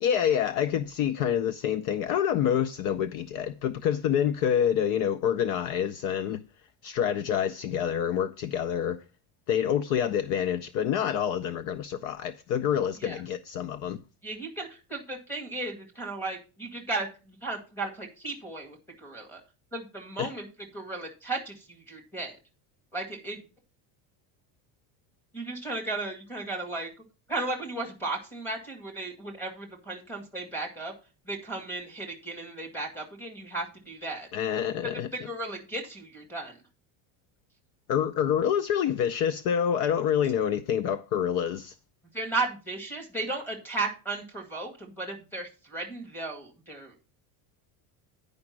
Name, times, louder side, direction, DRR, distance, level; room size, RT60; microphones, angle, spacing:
voice 1, 0.0-6.4 6.8-9.0 9.5-14.0 20.2-20.3 34.3-35.1 37.9-41.7, left 9 dB, 50° left, 0.5 m, -27 dB
voice 2, 14.2-19.4 19.7-20.5 20.7-22.4 22.9-23.4 25.3-26.9 27.3-30.9 31.3-34.3 35.1-36.6 42.1-47.0, right 2 dB, 5° left, 2.0 m, -35 dB
9.6 x 5.2 x 5.9 m
cardioid pair, 175°, 44 cm